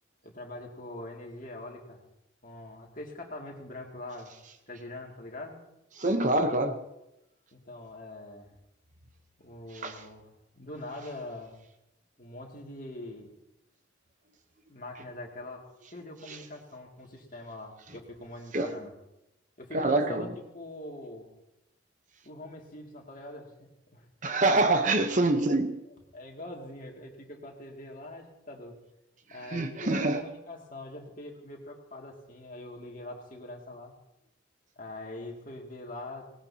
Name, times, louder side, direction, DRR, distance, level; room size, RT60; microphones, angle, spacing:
voice 1, 0.2-2.0 2.4-4.3 4.7-5.6 7.5-8.5 9.4-11.5 12.2-13.3 14.7-15.6 15.9-18.9 19.6-20.3 20.5-21.3 22.2-24.1 24.9-25.0 25.9-28.8 29.3-34.0 34.8-36.3, left 1 dB, 45° left, 0 dB, 2.4 m, -43 dB
voice 2, 6.0-6.8 9.7-10.0 16.3-16.4 18.5-18.7 19.7-20.3 24.2-25.8 29.5-30.2, right 2 dB, 40° right, 8 dB, 0.9 m, -25 dB
20.0 x 18.5 x 2.8 m, 0.90 s
head